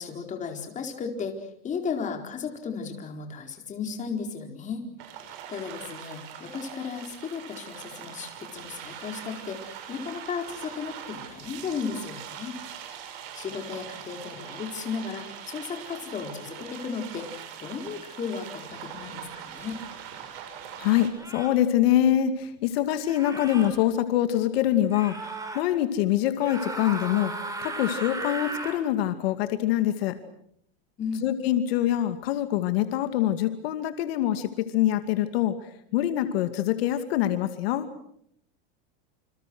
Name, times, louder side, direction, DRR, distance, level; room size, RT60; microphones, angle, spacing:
voice 1, 0.0-4.9 5.2-12.6 13.3-19.8 31.0-31.3, left 5 dB, 25° left, 4 dB, 4.5 m, -35 dB
sound 1, 5.0-21.1, right 9 dB, 65° right, 7.3 m, -42 dB
sound 2, 19.7-19.9 21.1-21.6 23.0-23.7 24.9-25.6 26.4-28.8, right 2 dB, 10° right, 5.8 m, -36 dB
voice 2, 20.8-25.1 25.5-27.3 27.6-30.1 31.2-35.5 35.9-37.9, left 12 dB, 75° left, 8 dB, 2.5 m, -24 dB
28.5 x 27.5 x 6.3 m, 0.69 s
supercardioid pair, 155°, 30 cm